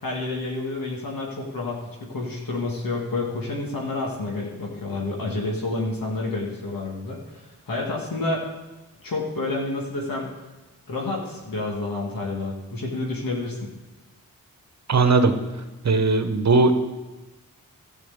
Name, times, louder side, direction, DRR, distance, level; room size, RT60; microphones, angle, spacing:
voice 1, 0.0-8.5 9.0-10.3 10.9-13.7, left 2 dB, 75° left, -2 dB, 2.0 m, -29 dB
voice 2, 14.9-15.3 15.8-16.8, right 3 dB, 50° right, 8 dB, 1.2 m, -18 dB
12.5 x 4.8 x 8.0 m, 1.1 s
cardioid pair, 50°, 35 cm